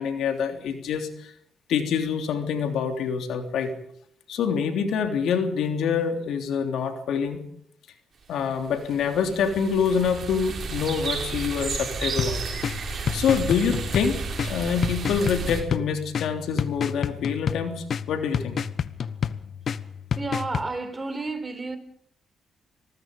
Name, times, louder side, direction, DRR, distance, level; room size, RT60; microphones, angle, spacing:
voice 1, 0.0-1.3 1.7-3.7 4.3-7.4 8.3-12.4 13.1-18.6, left 6 dB, 80° left, 3.3 m, -26 dB
sound 1, 8.5-15.6, right 5 dB, 55° right, 6.5 m, -32 dB
sound 2, 12.2-20.7, left 7 dB, 60° left, 1.0 m, -30 dB
voice 2, 20.2-21.8, right 3 dB, 25° right, 4.4 m, -31 dB
26.5 x 20.0 x 5.3 m
cardioid pair, 70°, 0 cm